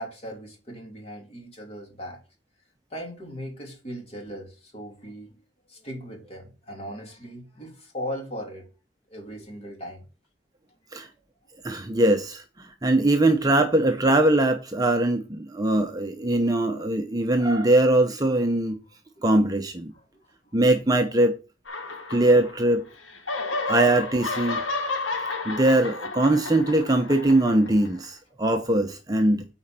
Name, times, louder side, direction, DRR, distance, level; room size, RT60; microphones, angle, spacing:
voice 1, 0.0-2.2 2.9-5.4 5.7-8.7 9.1-10.0 13.0-13.1 19.9-20.6 21.8-22.0 23.4-23.6, equal, 30° left, 2.8 m, -38 dB
voice 2, 11.6-18.8 19.2-19.9 20.5-21.4 22.1-22.9 23.7-24.6 25.5-29.5, right 1 dB, 20° right, 0.7 m, -21 dB
sound 1, 21.7-22.8 23.1-28.0, left 3 dB, 80° left, 1.9 m, -32 dB
9.1 x 4.3 x 5.8 m
head